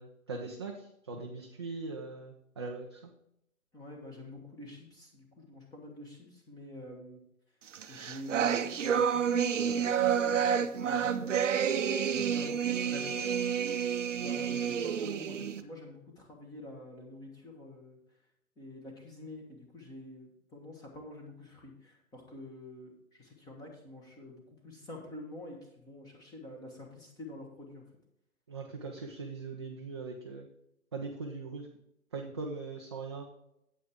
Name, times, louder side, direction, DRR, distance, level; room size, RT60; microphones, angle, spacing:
voice 1, 0.0-3.0 28.5-30.5 30.9-31.7 32.1-33.2, right 3 dB, 20° right, 0 dB, 0.5 m, -40 dB
voice 2, 3.7-7.2 7.9-11.2 12.1-13.4 14.1-18.0 18.6-27.8, left 1 dB, 10° left, 0 dB, 1.5 m, -47 dB
sound 1, 7.7-15.6, right 8 dB, 60° right, 0.7 m, -29 dB
9.2 x 8.5 x 3.6 m, 0.79 s
figure-of-eight pair, 135°, 43 cm